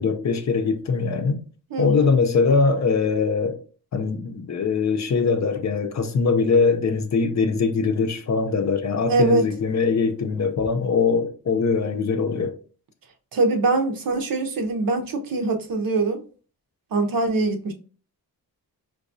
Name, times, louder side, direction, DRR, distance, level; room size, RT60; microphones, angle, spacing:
voice 1, 0.0-1.4 1.8-3.6 3.9-12.5, left 4 dB, 45° left, 0.6 m, -22 dB
voice 2, 1.7-2.1 9.1-9.5 13.3-16.2 16.9-17.7, right 3 dB, 65° right, 0.7 m, -23 dB
4.8 x 2.3 x 2.6 m
cardioid pair, 85°, 37 cm